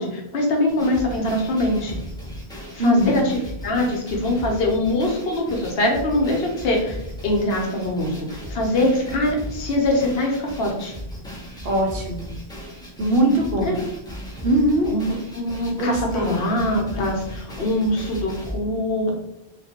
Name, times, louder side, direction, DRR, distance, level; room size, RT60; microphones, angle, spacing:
voice 1, 0.0-2.0 2.5-7.0 7.2-10.9 13.6-13.8 14.9-15.0 15.3-19.1, left 1 dB, 70° left, 0 dB, 0.9 m, -23 dB
sound 1, 0.7-18.6, equal, 5° left, 0.4 m, -36 dB
voice 2, 2.8-3.2 11.6-12.2 13.0-13.7 14.4-14.9 15.7-16.4, right 1 dB, 65° right, -1 dB, 0.8 m, -21 dB
2.4 x 2.2 x 2.8 m, 0.81 s
omnidirectional pair, 1.1 m